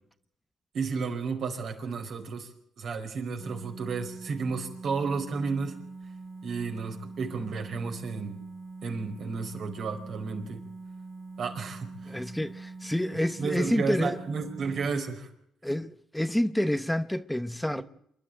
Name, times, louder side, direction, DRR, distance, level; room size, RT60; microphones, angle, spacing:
voice 1, 0.7-2.5 2.8-5.8 6.4-8.4 8.8-10.6 11.4-11.9 13.4-15.3 17.7-17.8, right 5 dB, 65° right, 4.6 m, -32 dB
sound 1, 3.4-14.8, right 3 dB, 40° right, 6.4 m, -44 dB
voice 2, 12.1-14.2 15.6-17.8, left 1 dB, 5° left, 0.8 m, -28 dB
27.0 x 11.5 x 9.0 m
cardioid pair, 90°, 0 cm